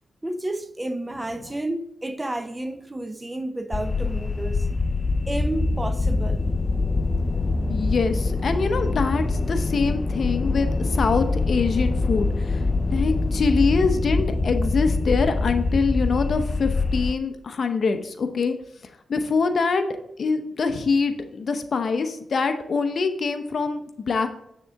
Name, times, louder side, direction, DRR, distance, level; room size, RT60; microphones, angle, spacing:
voice 1, 0.2-4.7 5.3-6.4, right 1 dB, 15° right, 0.6 m, -31 dB
sound 1, 3.7-17.1, left 3 dB, 35° left, 0.4 m, -24 dB
voice 2, 7.7-12.6 12.9-18.5 19.1-19.8 20.2-24.3, left 4 dB, 55° left, 0.8 m, -24 dB
7.5 x 6.8 x 3.5 m
cardioid pair, 90°, 0 cm